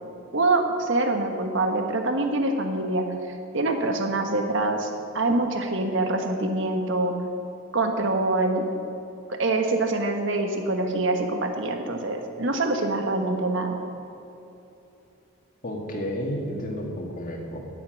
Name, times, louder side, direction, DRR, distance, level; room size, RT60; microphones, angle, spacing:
voice 1, 0.3-3.1 3.5-4.9 5.1-7.1 7.7-8.7 9.3-13.8, right 2 dB, 60° right, 4 dB, 1.5 m, -25 dB
voice 2, 15.6-17.6, equal, 40° left, 0 dB, 2.1 m, -31 dB
17.0 x 8.2 x 6.5 m, 2.9 s
head